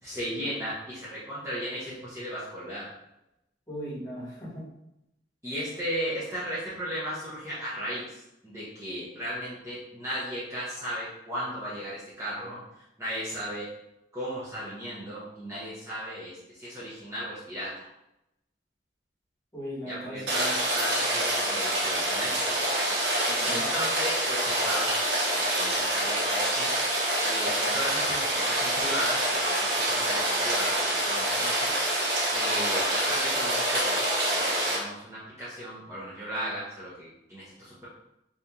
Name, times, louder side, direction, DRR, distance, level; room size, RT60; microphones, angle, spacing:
voice 1, 0.0-2.9 5.4-13.7 14.1-17.8 19.9-20.5 20.7-22.7 23.3-24.9 25.3-26.7 27.2-31.7 32.3-37.9, equal, 15° right, -9 dB, 0.7 m, -36 dB
voice 2, 3.7-4.6 19.5-20.5 23.4-23.6, equal, 20° left, -7 dB, 1.3 m, -38 dB
Rain, 20.3-34.8, right 1 dB, 70° right, 0.9 m, -26 dB
2.8 x 2.6 x 3.5 m, 0.87 s
head